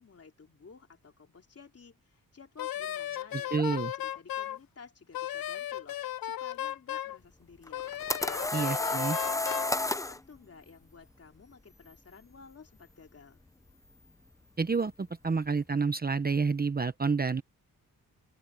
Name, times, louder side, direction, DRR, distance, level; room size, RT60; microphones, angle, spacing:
voice 1, 0.0-7.9 8.2-9.0 9.2-13.4, left 5 dB, 40° left, 3.3 m, -54 dB
Wind instrument woodwind instrument, 2.6-4.6 5.1-7.2 7.7-9.7, left 12 dB, 75° left, 0.6 m, -36 dB
voice 2, 3.3-3.9 8.5-9.2 14.6-17.4, right 4 dB, 25° right, 0.9 m, -29 dB
sound 1, 7.7-10.2, left 2 dB, 10° left, 0.5 m, -31 dB
open air
wide cardioid pair, 120°, 36 cm